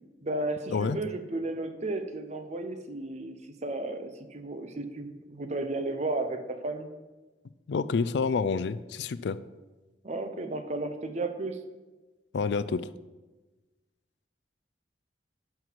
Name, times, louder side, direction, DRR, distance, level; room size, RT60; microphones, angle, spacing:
voice 1, 0.2-3.4 3.6-6.9 10.0-11.6, right 2 dB, 40° right, 8 dB, 0.8 m, -33 dB
voice 2, 7.7-9.4 12.3-12.9, left 5 dB, 75° left, 15 dB, 0.4 m, -28 dB
11.0 x 6.0 x 4.7 m, 1.2 s
head